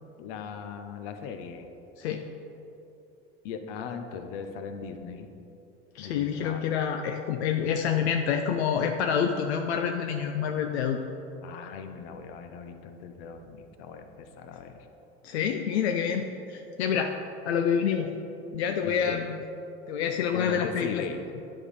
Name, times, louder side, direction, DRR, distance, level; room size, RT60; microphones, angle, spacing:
voice 1, 0.2-1.7 3.4-5.3 6.0-6.6 11.4-14.7 18.8-19.3 20.3-21.2, left 6 dB, 65° left, 7 dB, 0.8 m, -39 dB
voice 2, 5.9-11.0 15.2-17.1 17.5-18.1 18.5-19.4 19.9-21.0, left 7 dB, 90° left, 4 dB, 0.5 m, -27 dB
9.6 x 3.6 x 4.9 m, 2.8 s
hypercardioid pair, 90°, 32 cm